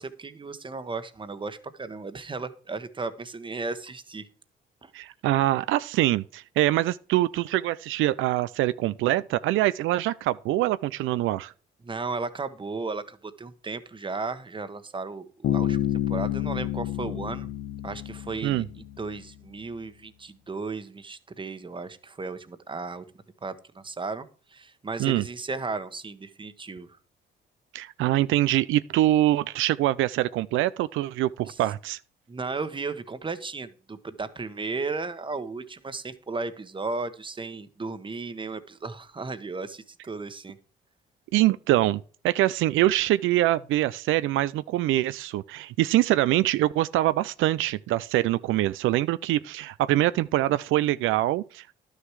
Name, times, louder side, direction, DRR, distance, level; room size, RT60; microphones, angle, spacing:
voice 1, 0.0-4.3 4.8-4.9 11.8-15.8 16.1-17.5 17.8-18.6 19.0-23.0 23.4-26.9 31.5-31.6 32.3-40.6, right 4 dB, 25° right, 1.1 m, -35 dB
voice 2, 4.9-11.5 18.4-18.6 25.0-25.2 27.7-32.0 41.3-42.0 42.2-51.7, right 15 dB, 85° right, 0.4 m, -24 dB
Bass guitar, 15.4-19.1, left 12 dB, 80° left, 1.2 m, -29 dB
11.5 x 6.6 x 4.7 m
cardioid pair, 90°, 20 cm